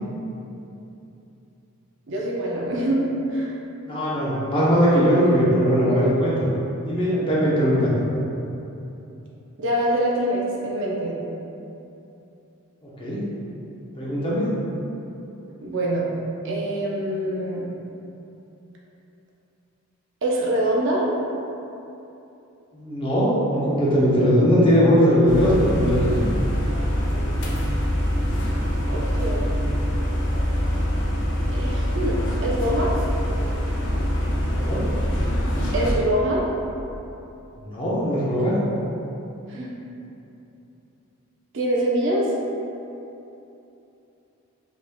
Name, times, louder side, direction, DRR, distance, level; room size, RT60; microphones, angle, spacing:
voice 1, 2.1-3.1 3.3-3.5 9.6-11.1 15.6-16.1 16.4-17.7 20.2-21.1 28.9-29.5 31.5-32.9 35.7-36.4 39.5-39.7 41.5-42.3, right 1 dB, 55° right, -4 dB, 0.6 m, -24 dB
voice 2, 3.8-6.5 6.8-8.0 13.0-13.2 14.0-14.5 22.7-26.3 34.6-34.8 37.6-38.6, equal, 25° left, -8 dB, 0.8 m, -20 dB
sound 1, 25.3-35.9, equal, 55° left, 0.6 m, -24 dB
4.8 x 3.5 x 2.2 m, 2.9 s
head